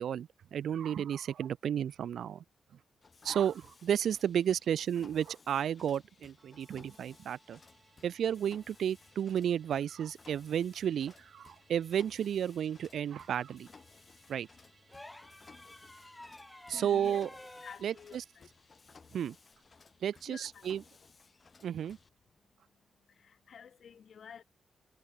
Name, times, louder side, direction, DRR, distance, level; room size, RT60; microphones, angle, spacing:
voice 1, 0.0-2.4 3.2-7.6 8.0-13.7 14.3-14.5 16.7-17.3 17.8-18.2 19.1-19.4 20.0-20.8 21.6-22.0, right 9 dB, 80° right, 0.6 m, -32 dB
Mechanisms, 3.0-22.1, left 4 dB, 30° left, 2.4 m, -60 dB
Musical instrument, 6.4-21.0 21.4-21.5, right 4 dB, 35° right, 4.4 m, -67 dB
sound 1, 14.9-17.8 19.5-19.7, left 1 dB, 10° left, 0.7 m, -51 dB
voice 2, 16.7-17.2 17.6-18.5 20.3-20.8 23.1-24.4, left 7 dB, 55° left, 2.4 m, -51 dB
wide cardioid pair, 160°, 0 cm